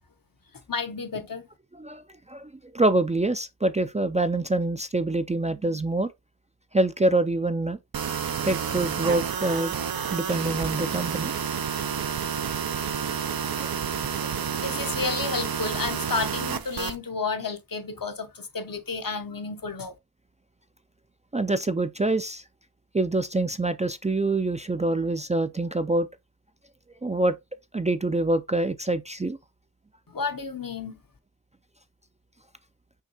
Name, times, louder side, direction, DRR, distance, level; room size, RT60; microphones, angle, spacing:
voice 1, 0.7-1.4 14.6-19.9 30.1-30.9, left 4 dB, 65° left, 0.9 m, -31 dB
voice 2, 1.7-2.0 2.3-6.1 6.7-7.8 8.4-9.7 10.1-11.3 13.6-13.7 14.1-14.2 21.3-22.4 22.9-26.1 27.0-27.3 27.7-29.4, right 2 dB, 20° right, 0.3 m, -25 dB
sound 1, 7.9-17.0, right 7 dB, 70° right, 0.5 m, -30 dB
5.8 x 3.1 x 2.9 m
wide cardioid pair, 45°, 37 cm